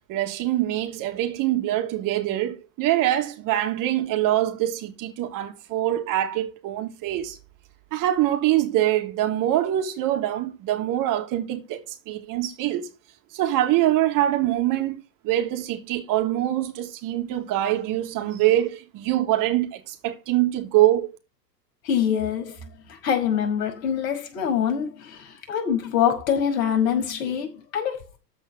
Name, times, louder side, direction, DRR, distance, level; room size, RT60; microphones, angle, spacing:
voice 1, 0.1-7.4 7.9-12.9 13.3-21.1, right 13 dB, 40° right, 3.3 m, -24 dB
voice 2, 21.8-22.6 22.9-28.2, left 8 dB, 55° left, 5.7 m, -25 dB
14.0 x 5.3 x 6.4 m
hypercardioid pair, 100°, 49 cm